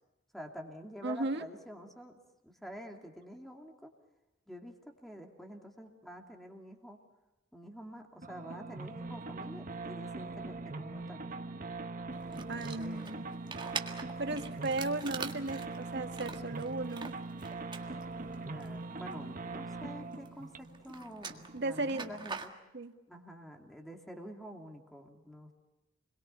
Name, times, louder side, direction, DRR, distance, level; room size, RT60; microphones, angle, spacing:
voice 1, 0.3-3.9 4.5-7.0 7.5-11.4 12.2-13.3 14.3-14.6 18.4-22.5 23.1-25.5, equal, ahead, 2 dB, 2.5 m, -48 dB
voice 2, 1.0-1.5 12.5-13.2 14.0-17.1 21.5-22.1 22.7-22.9, right 2 dB, 60° right, 6 dB, 1.7 m, -36 dB
sound 1, 8.2-22.3, right 3 dB, 40° right, 1.2 m, -42 dB
sound 2, 12.1-19.9 20.1-22.5, right 5 dB, 25° right, 1.7 m, -44 dB
28.0 x 22.0 x 6.9 m, 1.0 s
head